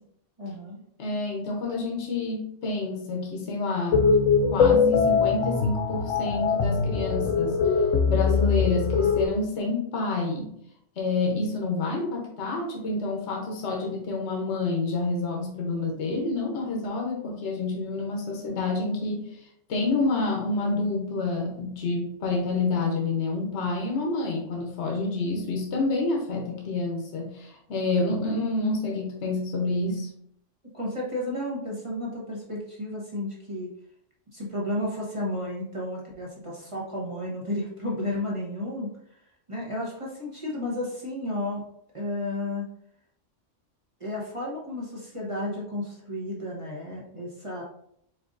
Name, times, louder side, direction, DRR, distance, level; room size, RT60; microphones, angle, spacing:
voice 1, 0.4-0.8 30.7-33.7 34.3-38.9 39.5-41.6 41.9-42.7 44.0-47.6, left 1 dB, 25° right, -4 dB, 1.0 m, -32 dB
voice 2, 1.0-4.1 4.5-7.7 8.1-10.5 11.0-30.1, left 3 dB, 65° left, -1 dB, 1.2 m, -28 dB
sound 1, 3.9-9.3, left 5 dB, 80° left, 0.9 m, -22 dB
4.6 x 3.8 x 2.5 m, 0.71 s
omnidirectional pair, 1.3 m